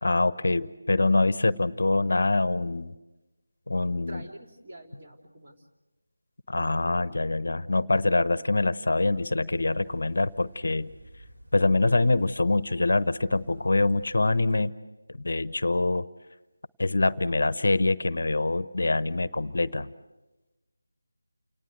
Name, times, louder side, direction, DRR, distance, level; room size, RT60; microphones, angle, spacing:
voice 1, 0.0-2.9 3.7-4.2 6.5-10.9 11.5-14.7 15.1-16.1 16.8-19.9, left 2 dB, 55° left, 17 dB, 0.8 m, -25 dB
voice 2, 4.1-5.7, right 1 dB, 35° right, 1 dB, 3.1 m, -46 dB
sound 1, 9.5-14.6, right 1 dB, 55° right, 3.5 m, -50 dB
29.5 x 18.5 x 7.7 m, 1.1 s
figure-of-eight pair, 160°, 0 cm